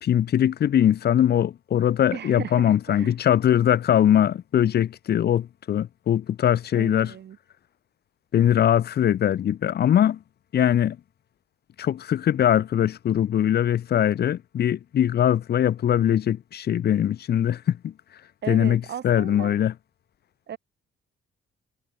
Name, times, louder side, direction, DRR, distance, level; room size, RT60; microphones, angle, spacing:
voice 1, 0.0-7.1 8.3-10.2 10.5-11.0 11.8-17.9 18.5-19.7, left 10 dB, 55° left, 0.8 m, -21 dB
voice 2, 2.1-3.1 6.7-7.4 18.4-19.6 20.5-20.6, right 9 dB, 60° right, 1.7 m, -36 dB
cardioid pair, 90°, 20 cm